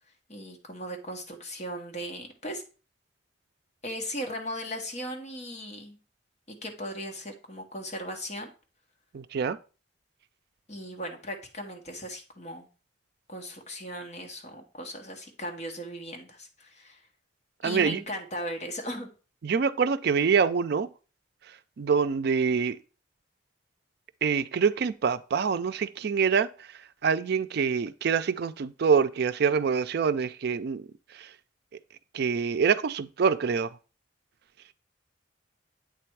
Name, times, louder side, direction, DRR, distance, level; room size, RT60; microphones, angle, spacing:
voice 1, 0.3-2.6 3.8-6.0 6.5-8.5 10.7-12.7 13.3-17.0 17.6-19.1, equal, 40° left, 1.2 m, -37 dB
voice 2, 9.1-9.6 17.6-18.0 19.4-20.9 21.8-22.8 24.2-26.5 27.0-30.8 31.2-31.3 32.1-33.7, right 6 dB, 60° right, 0.4 m, -25 dB
8.3 x 3.4 x 4.6 m
head